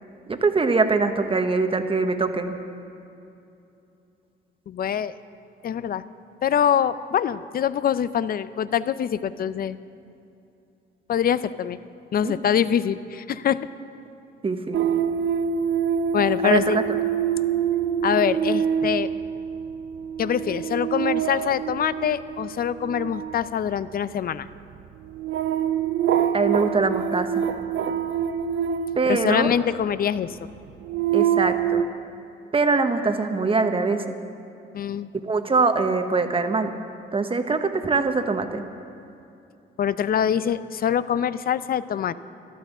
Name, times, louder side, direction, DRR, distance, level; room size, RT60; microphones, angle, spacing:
voice 1, 0.3-2.5 12.2-12.4 14.4-14.8 16.4-16.8 26.3-27.4 29.0-29.5 31.1-31.8 32.5-34.1 35.3-36.7 37.1-38.6, right 4 dB, 25° right, 7 dB, 1.1 m, -23 dB
voice 2, 4.7-5.1 5.6-6.0 6.4-9.8 11.1-11.8 12.1-13.7 16.1-16.8 18.0-19.1 20.2-24.5 29.1-30.4 34.7-35.1 39.8-42.1, left 9 dB, 50° left, 15 dB, 0.5 m, -24 dB
sound 1, 14.7-29.9 30.5-31.8, right 8 dB, 70° right, 0.6 m, -26 dB
12.5 x 12.5 x 7.3 m, 2.7 s
cardioid pair, 90°, 20 cm